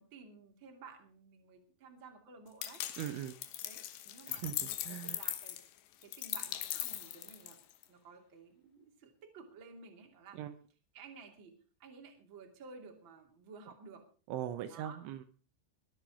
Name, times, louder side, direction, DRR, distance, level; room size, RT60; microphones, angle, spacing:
voice 1, 0.0-3.0 3.6-4.5 4.9-5.6 6.0-7.6 7.9-10.4 10.9-11.5 11.8-14.1 14.7-15.0, right 4 dB, 35° right, 2 dB, 2.4 m, -54 dB
sound 1, 2.6-7.8, left 13 dB, 70° left, 2.8 m, -40 dB
voice 2, 3.0-3.4 4.3-5.2 10.3-10.5 14.3-15.3, right 11 dB, 80° right, 9 dB, 3.1 m, -40 dB
22.5 x 8.1 x 4.8 m, 0.39 s
omnidirectional pair, 5.8 m